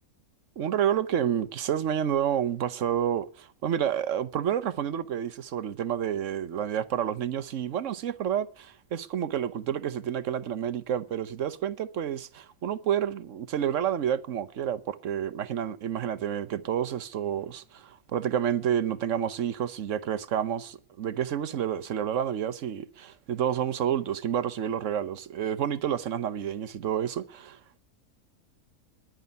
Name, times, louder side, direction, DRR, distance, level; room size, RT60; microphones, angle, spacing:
voice 1, 0.6-27.6, right 9 dB, 60° right, 1.1 m, -29 dB
10.5 x 9.8 x 9.5 m
omnidirectional pair, 1.6 m